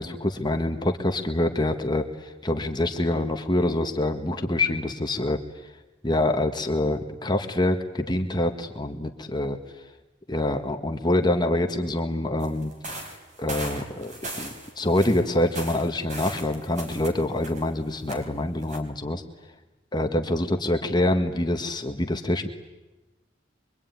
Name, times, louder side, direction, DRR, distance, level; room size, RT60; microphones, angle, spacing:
voice 1, 0.0-5.4 6.0-9.6 10.3-12.7 13.4-14.1 14.4-19.2 19.9-22.5, left 1 dB, 20° left, 5 dB, 1.6 m, -25 dB
sound 1, 12.4-17.7 18.0-18.2 18.6-18.8, right 1 dB, 40° right, 4.7 m, -38 dB
24.5 x 23.5 x 9.5 m, 1.1 s
head